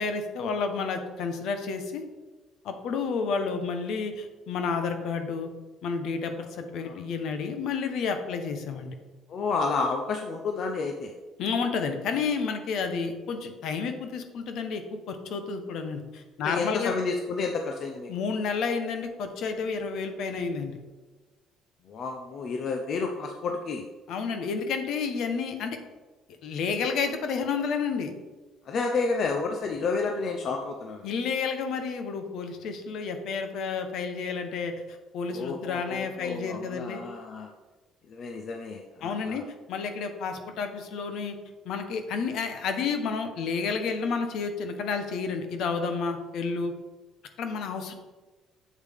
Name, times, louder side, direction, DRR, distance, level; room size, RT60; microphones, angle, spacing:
voice 1, 0.0-2.0 2.6-5.5 5.8-8.9 11.4-16.9 18.1-20.8 24.1-25.8 26.4-28.1 31.0-34.7 35.1-37.0 39.0-41.4 41.6-46.7 47.4-47.9, left 5 dB, 70° left, 7 dB, 1.1 m, -30 dB
voice 2, 9.3-11.1 16.4-18.1 21.9-23.9 28.7-31.1 35.3-37.5 38.1-39.4, left 4 dB, 55° left, 3 dB, 0.7 m, -30 dB
8.1 x 7.3 x 3.6 m, 1.2 s
cardioid pair, 100°, 0 cm